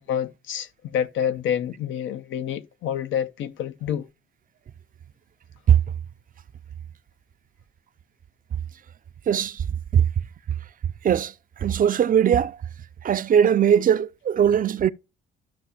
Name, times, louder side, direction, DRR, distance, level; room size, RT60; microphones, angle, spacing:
voice 1, 0.1-4.0, left 9 dB, 80° left, 0.7 m, -28 dB
voice 2, 11.6-12.5 13.0-14.9, right 9 dB, 45° right, 0.5 m, -19 dB
13.0 x 5.7 x 2.3 m
cardioid pair, 90°, 20 cm